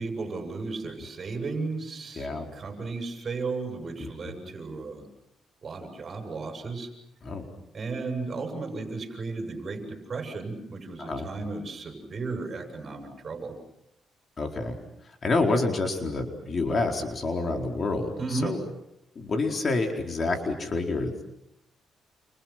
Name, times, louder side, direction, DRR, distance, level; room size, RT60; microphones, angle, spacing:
voice 1, 0.0-5.1 5.6-6.9 7.7-13.6 18.2-18.6, right 3 dB, 40° right, 5 dB, 7.6 m, -34 dB
voice 2, 2.2-2.5 4.0-4.1 7.2-7.4 11.0-11.2 14.4-14.7 15.2-18.1 18.4-18.6 19.2-21.2, left 3 dB, 40° left, 3 dB, 4.5 m, -28 dB
29.5 x 29.0 x 6.1 m, 0.81 s
cardioid pair, 90°, 0 cm